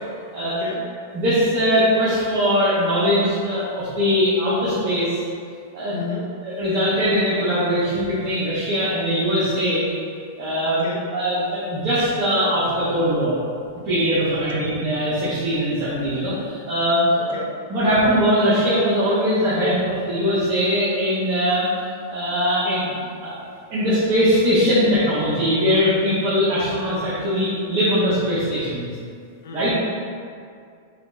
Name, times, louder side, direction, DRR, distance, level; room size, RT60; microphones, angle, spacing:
voice 1, 0.4-0.9 5.9-6.3 10.7-11.1 14.3-14.7 17.1-17.5 29.4-29.8, left 4 dB, 70° left, 0 dB, 0.4 m, -32 dB
voice 2, 1.1-5.2 5.7-5.9 6.4-9.8 10.4-10.8 11.1-13.4 13.8-17.4 17.7-21.7 22.1-22.9 23.2-23.3 23.7-28.9 29.5-29.7, equal, 55° right, -10 dB, 0.9 m, -21 dB
4.1 x 2.1 x 2.5 m, 2.3 s
hypercardioid pair, 110°, 0 cm